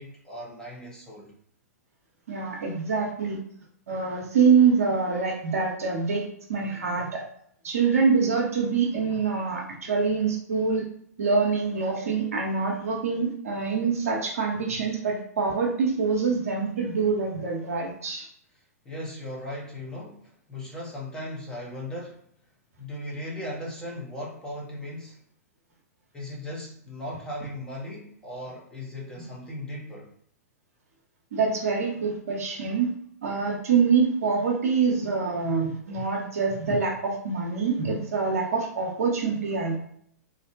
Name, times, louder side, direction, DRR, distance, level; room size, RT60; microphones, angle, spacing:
voice 1, 0.0-1.3 18.8-22.2 22.8-25.2 26.1-30.1, left 1 dB, 10° left, -5 dB, 0.7 m, -37 dB
voice 2, 2.3-3.4 3.9-7.2 7.6-10.8 11.2-18.3 31.3-32.9 33.2-39.8, right 5 dB, 65° right, -1 dB, 0.7 m, -25 dB
2.5 x 2.1 x 2.6 m, 0.65 s
figure-of-eight pair, 105°, 9 cm